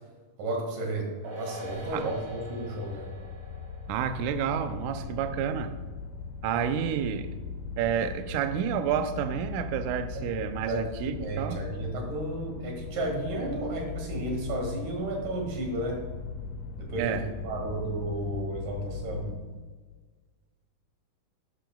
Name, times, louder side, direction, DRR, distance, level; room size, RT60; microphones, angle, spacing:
voice 1, 0.4-3.1 10.1-10.3 10.7-16.0 16.8-17.2 17.4-19.3, right 1 dB, 65° right, 0 dB, 3.4 m, -33 dB
sound 1, 1.2-7.9 8.2-8.3, right 1 dB, 40° right, 1.5 m, -46 dB
sound 2, 1.6-19.3, left 4 dB, 85° left, 2.6 m, -39 dB
voice 2, 3.9-5.7 6.4-7.3 7.8-11.6 17.0-17.3, right 8 dB, 90° right, 9 dB, 1.7 m, -29 dB
11.5 x 10.5 x 2.3 m, 1.4 s
omnidirectional pair, 4.2 m